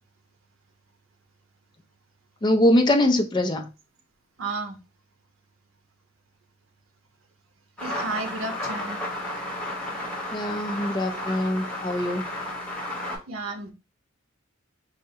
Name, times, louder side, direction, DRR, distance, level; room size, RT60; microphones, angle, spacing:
voice 1, 2.4-3.7 10.3-12.3, left 1 dB, 20° left, 0.3 m, -23 dB
voice 2, 4.4-4.8 7.8-9.0 13.3-13.7, right 3 dB, 85° right, 0.8 m, -32 dB
sound 1, 7.8-13.2, left 1 dB, 5° left, 0.9 m, -33 dB
4.5 x 2.1 x 2.7 m
head